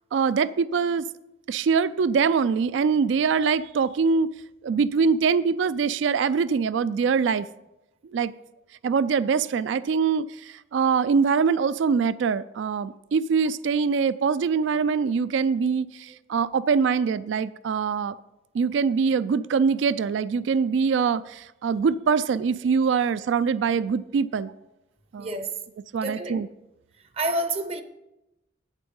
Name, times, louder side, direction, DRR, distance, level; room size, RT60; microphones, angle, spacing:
voice 1, 0.1-1.0 1.5-4.3 4.6-7.5 8.1-8.3 8.8-18.1 18.5-24.5 25.1-25.4 25.9-26.5, right 5 dB, 75° right, 0.3 m, -23 dB
voice 2, 25.2-25.5 26.0-26.3 27.2-27.8, right 1 dB, 30° right, 0.6 m, -28 dB
8.7 x 8.2 x 5.4 m
head